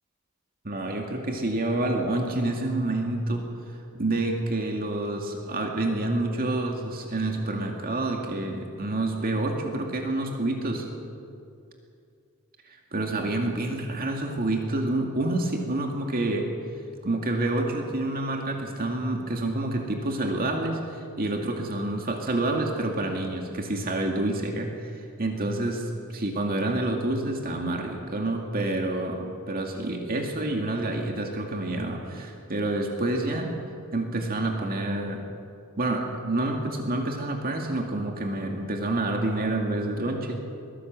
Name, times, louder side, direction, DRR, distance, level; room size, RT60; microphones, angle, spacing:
voice 1, 0.6-3.5 3.9-10.9 12.9-16.5 17.0-33.5 33.9-35.2 35.8-40.4, right 2 dB, 45° right, 2 dB, 2.2 m, -28 dB
22.5 x 16.5 x 7.6 m, 2.5 s
head